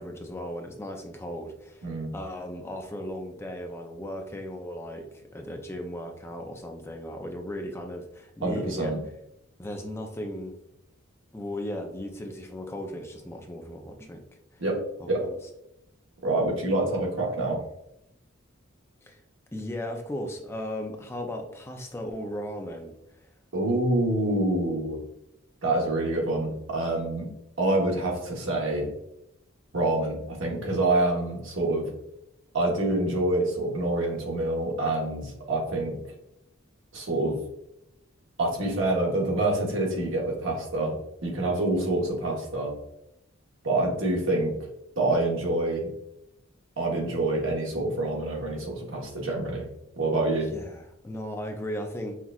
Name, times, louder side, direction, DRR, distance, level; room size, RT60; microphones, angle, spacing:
voice 1, 0.0-1.9 2.1-8.9 9.6-10.5 11.3-14.2 14.5-14.6 15.0-15.4 19.0-19.2 19.5-22.9 50.5-52.2, left 1 dB, 10° left, 3 dB, 0.4 m, -36 dB
voice 2, 8.4-9.0 14.6-14.8 15.1-15.3 16.2-17.6 23.5-25.0 25.6-27.3 27.6-28.9 29.7-31.9 32.5-36.0 36.9-37.4 38.4-41.0 41.2-42.7 43.6-44.5 45.0-45.9 46.8-49.6 50.0-50.5, right 2 dB, 70° right, -2 dB, 1.1 m, -26 dB
5.7 x 2.4 x 2.3 m, 0.82 s
head